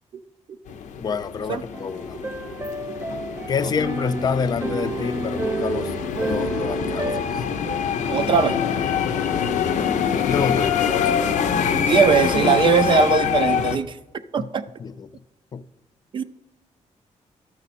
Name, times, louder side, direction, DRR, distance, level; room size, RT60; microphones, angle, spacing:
sound 1, 0.7-13.8, left 7 dB, 85° left, 0.6 m, -25 dB
voice 1, 1.0-2.2 3.5-5.9 6.2-7.4 10.2-11.1 14.4-14.5 14.8-15.1 15.5-15.7, left 6 dB, 35° left, 0.4 m, -27 dB
sound 2, 1.7-7.2, right 3 dB, 20° right, 0.7 m, -30 dB
voice 2, 7.5-7.8 8.1-8.6 11.7-14.0 14.3-14.6 16.1-16.2, right 6 dB, 40° right, 0.4 m, -21 dB
12.5 x 6.1 x 4.2 m
cardioid pair, 140°, 12 cm